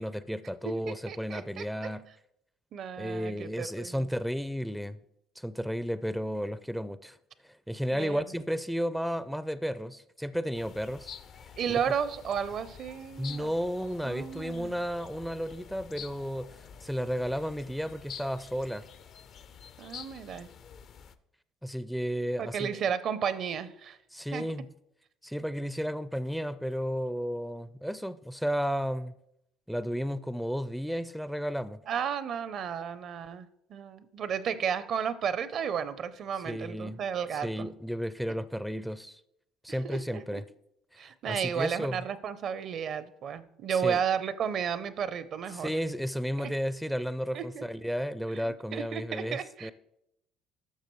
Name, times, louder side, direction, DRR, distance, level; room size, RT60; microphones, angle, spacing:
voice 1, 0.0-2.0 3.0-5.0 5.4-7.2 7.4-11.1 11.4-11.5 13.2-18.8 21.6-22.7 24.1-24.7 25.2-29.1 29.7-31.8 36.4-37.0 37.3-39.2 39.6-40.4 40.9-42.0 43.7-44.0 45.5-49.7, equal, ahead, 0.4 m, -33 dB
voice 2, 0.6-1.7 2.7-4.1 7.9-8.2 11.6-13.5 14.0-14.8 19.8-20.5 22.4-24.0 24.3-24.5 31.9-37.7 39.7-40.4 41.0-45.7 46.4-46.5 47.3-47.6 48.3-48.4 48.7-49.7, right 7 dB, 55° right, 0.6 m, -33 dB
sound 1, 10.5-21.2, left 7 dB, 55° left, 0.5 m, -48 dB
12.0 x 6.4 x 3.1 m
supercardioid pair, 80°, 0 cm